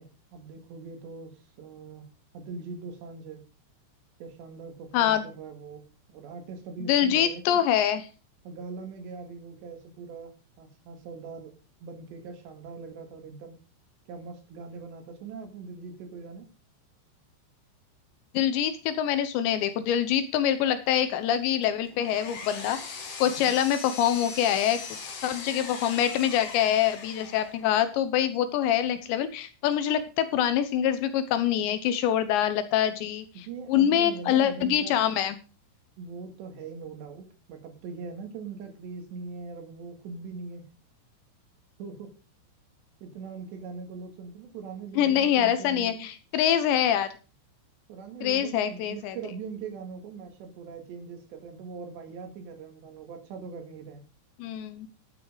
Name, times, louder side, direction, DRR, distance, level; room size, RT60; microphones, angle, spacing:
voice 1, 0.0-2.1 2.3-3.4 4.2-5.8 6.1-7.6 8.5-10.3 10.6-11.5 11.8-13.6 14.1-16.5 23.3-23.6 33.4-35.0 36.0-40.7 41.8-42.1 43.0-46.1 47.9-54.0, right 5 dB, 65° right, 5 dB, 4.0 m, -41 dB
voice 2, 4.9-5.3 6.9-8.1 18.3-22.8 23.2-24.8 25.2-35.4 45.0-47.1 48.2-49.2 54.4-54.9, left 10 dB, 75° left, 12 dB, 2.9 m, -25 dB
Power tool, 21.6-27.7, left 5 dB, 45° left, 2.2 m, -40 dB
12.5 x 8.9 x 4.9 m, 0.33 s
omnidirectional pair, 5.6 m